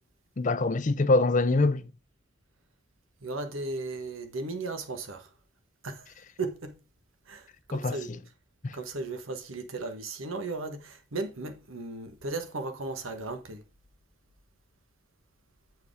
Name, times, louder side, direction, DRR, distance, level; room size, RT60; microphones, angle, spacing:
voice 1, 0.4-1.9 7.7-8.2 8.6-8.8, left 2 dB, 40° left, 0.5 m, -25 dB
voice 2, 3.2-5.3 5.8-6.0 6.4-6.8 7.3-8.2 8.7-13.6, right 3 dB, 85° right, 1.4 m, -36 dB
8.3 x 4.8 x 4.9 m
head